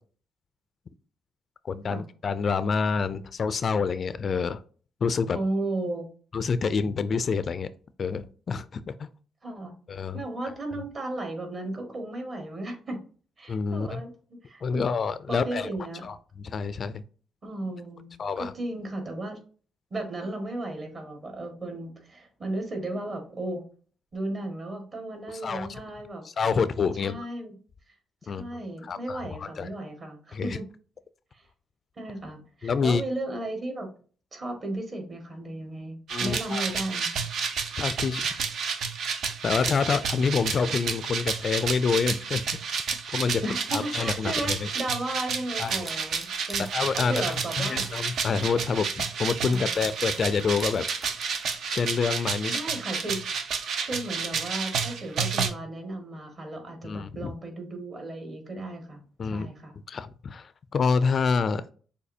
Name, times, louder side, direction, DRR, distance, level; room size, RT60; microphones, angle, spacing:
voice 1, 1.6-4.6 5.0-5.4 6.3-7.7 8.0-9.1 9.9-10.2 13.5-14.0 14.6-15.7 16.0-17.0 18.2-18.5 25.4-25.7 26.4-27.2 28.3-28.5 28.8-29.7 30.3-30.6 32.6-33.0 36.1-36.6 37.8-38.2 39.4-42.4 43.1-44.6 45.6-45.7 46.7-47.2 47.6-50.9 51.7-52.6 56.8-57.3 59.2-59.5 59.9-61.6, left 5 dB, 45° left, 14 dB, 0.3 m, -27 dB
voice 2, 5.3-6.1 9.4-9.7 10.1-13.0 13.4-14.1 14.4-14.9 15.3-16.0 17.4-19.4 19.9-23.6 24.1-26.2 27.0-27.6 28.2-30.6 31.3-31.5 31.9-33.9 34.3-37.2 43.4-46.6 46.9-47.8 49.5-49.9 52.5-53.4 53.9-59.8, right 2 dB, 40° right, 3 dB, 1.7 m, -35 dB
sound 1, 36.1-55.5, right 6 dB, 70° right, 0.7 m, -31 dB
sound 2, 45.6-48.7 49.3-51.5, right 1 dB, 20° right, 1.5 m, -45 dB
6.4 x 2.7 x 2.7 m, 0.41 s
cardioid pair, 90°, 0 cm